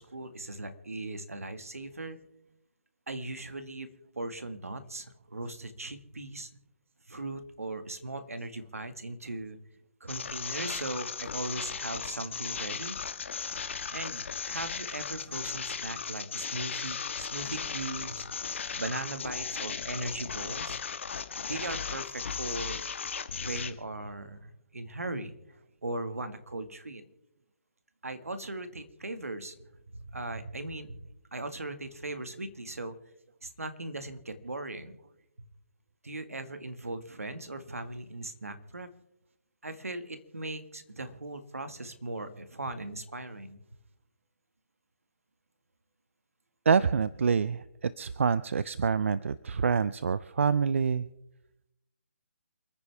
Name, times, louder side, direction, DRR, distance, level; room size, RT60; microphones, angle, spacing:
voice 1, 0.0-2.2 3.1-3.9 4.1-6.5 7.1-9.6 10.0-13.0 13.9-18.3 18.8-20.8 21.5-22.9 23.4-25.3 25.8-27.0 28.0-29.6 29.9-31.0 31.3-33.0 33.4-35.0 36.0-38.9 39.6-43.6, right 2 dB, 85° right, 9 dB, 2.0 m, -38 dB
sound 1, 10.1-23.7, left 6 dB, 60° left, 1.6 m, -36 dB
voice 2, 46.7-51.1, right 6 dB, 60° right, 17 dB, 0.6 m, -26 dB
29.0 x 9.9 x 3.6 m, 0.87 s
figure-of-eight pair, 145°, 8 cm